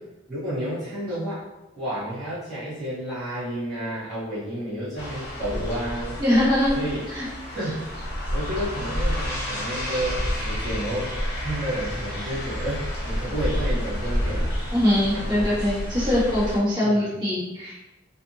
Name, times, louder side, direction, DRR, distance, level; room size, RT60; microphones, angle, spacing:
voice 1, 0.3-1.4 1.7-6.2 6.7-7.0 7.5-14.5 15.1-15.5 16.8-17.1, right 1 dB, ahead, -14 dB, 1.2 m, -31 dB
sound 1, 5.0-16.6, equal, 55° left, 0.9 m, -29 dB
voice 2, 6.2-6.7 7.1-7.3 14.7-17.8, left 1 dB, 25° right, -10 dB, 1.3 m, -22 dB
2.5 x 2.5 x 2.7 m, 0.99 s
head